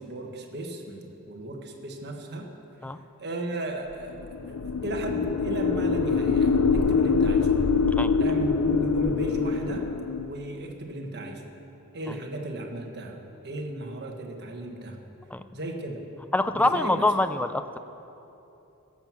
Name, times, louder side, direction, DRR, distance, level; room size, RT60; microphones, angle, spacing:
voice 1, 0.0-2.5 3.2-4.1 4.5-7.6 8.2-11.4 11.9-15.0 15.5-16.0 16.5-17.3, right 1 dB, 50° right, 2 dB, 1.4 m, -35 dB
sound 1, 4.2-10.3, left 4 dB, 90° left, 0.5 m, -24 dB
voice 2, 16.3-17.8, left 2 dB, 5° left, 10 dB, 0.4 m, -25 dB
17.0 x 7.4 x 6.1 m, 2.9 s
head